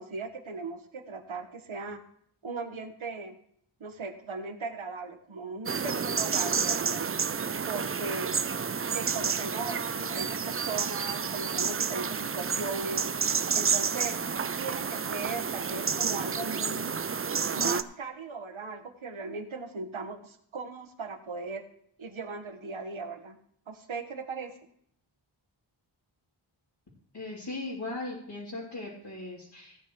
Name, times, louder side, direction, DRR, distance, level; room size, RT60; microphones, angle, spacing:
voice 1, 0.0-2.0 2.4-3.4 3.8-7.1 7.7-8.4 8.9-13.1 13.5-16.9 17.5-21.6 22.0-23.4 23.7-24.5, right 4 dB, 70° right, 6 dB, 1.5 m, -38 dB
sound 1, 5.7-17.8, right 6 dB, 30° right, 0.5 m, -30 dB
voice 2, 27.1-29.8, left 2 dB, 55° left, -7 dB, 3.2 m, -38 dB
17.0 x 9.4 x 3.2 m, 0.67 s
wide cardioid pair, 65°, 49 cm